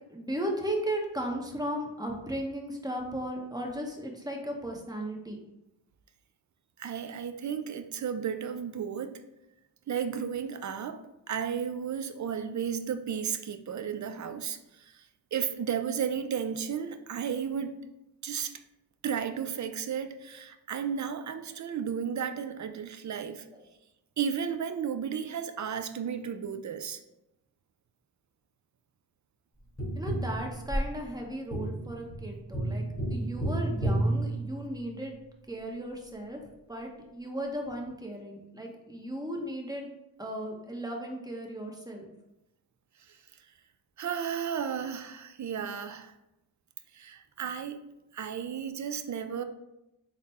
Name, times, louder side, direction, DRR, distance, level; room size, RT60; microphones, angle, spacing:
voice 1, 0.1-5.4 21.5-21.6 23.5-23.6 30.0-35.1 35.5-36.4 36.7-39.9 40.2-42.1, right 1 dB, 10° right, 1 dB, 0.8 m, -36 dB
voice 2, 6.8-9.2 9.9-15.0 15.3-17.8 18.2-18.5 19.0-23.5 24.2-27.0 43.1-43.2 44.0-46.1 46.9-47.8 48.1-49.4, right 7 dB, 45° right, 9 dB, 0.4 m, -33 dB
Tap, 29.8-35.1 37.7-37.8, right 1 dB, 5° left, 1.2 m, -32 dB
3.9 x 2.1 x 4.2 m, 0.91 s
cardioid pair, 45°, 43 cm